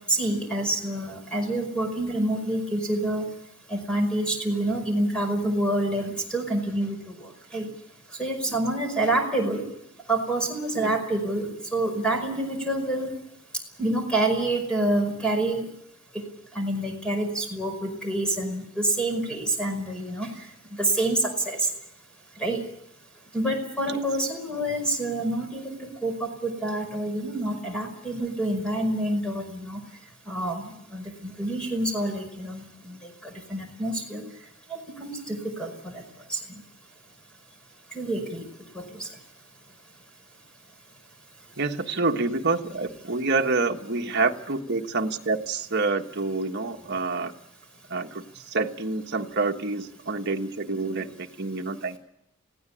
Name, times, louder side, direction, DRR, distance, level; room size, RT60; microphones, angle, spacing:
voice 1, 0.1-3.3 3.7-7.0 7.5-7.7 8.2-9.6 10.1-13.1 13.8-15.7 16.6-20.3 20.8-21.6 22.4-22.6 23.3-25.8 26.0-29.8 30.3-34.2 34.7-36.0 36.3-36.6 37.9-38.5 38.7-39.1, right 1 dB, 5° left, 2 dB, 5.3 m, -27 dB
voice 2, 41.6-47.3 47.9-52.0, right 3 dB, 55° right, 3 dB, 1.4 m, -27 dB
19.5 x 16.5 x 10.0 m, 0.82 s
head